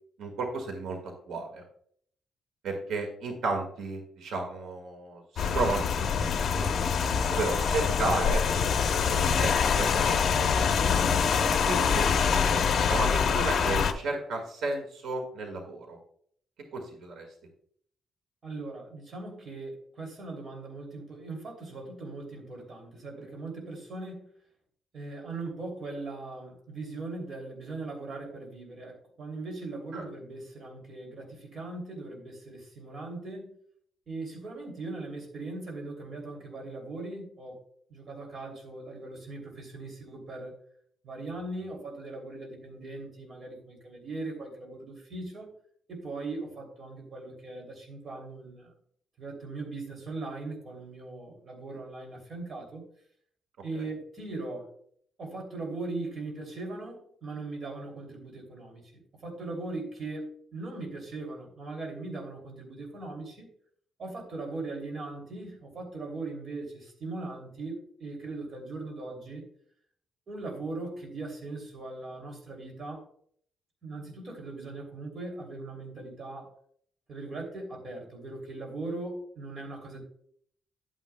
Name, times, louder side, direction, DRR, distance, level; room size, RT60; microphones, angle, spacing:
voice 1, 0.2-1.6 2.6-6.1 6.5-6.9 7.3-8.4 9.1-10.5 11.7-16.0 16.7-17.3 29.9-30.0, right 3 dB, 85° right, 2 dB, 1.9 m, -33 dB
Rain, 5.4-13.9, left 6 dB, 50° left, 0.8 m, -25 dB
voice 2, 18.4-24.3 24.9-33.5 34.1-37.6 37.9-40.5 41.0-45.5 45.9-48.7 49.2-52.8 53.6-54.7 55.2-58.8 59.2-63.5 64.0-69.4 70.3-73.1 73.8-76.5 77.1-80.0, right 2 dB, 40° right, 1 dB, 3.0 m, -39 dB
11.0 x 9.0 x 2.3 m, 0.62 s
cardioid pair, 155°, 0 cm